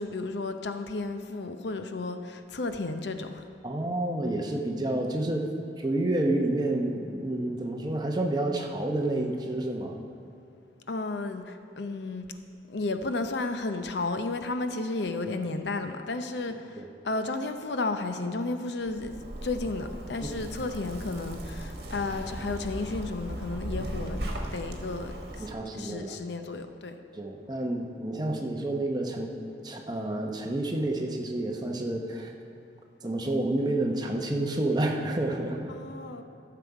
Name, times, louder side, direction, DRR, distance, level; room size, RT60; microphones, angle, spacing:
voice 1, 0.0-3.4 10.9-12.4 12.7-24.2 24.5-25.5 25.7-26.9 35.7-36.2, left 3 dB, 80° left, 8 dB, 0.7 m, -33 dB
voice 2, 3.6-5.5 5.8-10.0 16.8-16.9 25.4-26.2 27.1-29.3 29.6-32.3 33.0-35.7, right 1 dB, 25° right, 2 dB, 0.8 m, -29 dB
Zipper (clothing), 18.9-25.5, right 1 dB, 65° right, 1.4 m, -37 dB
13.5 x 6.9 x 4.8 m, 2.7 s
head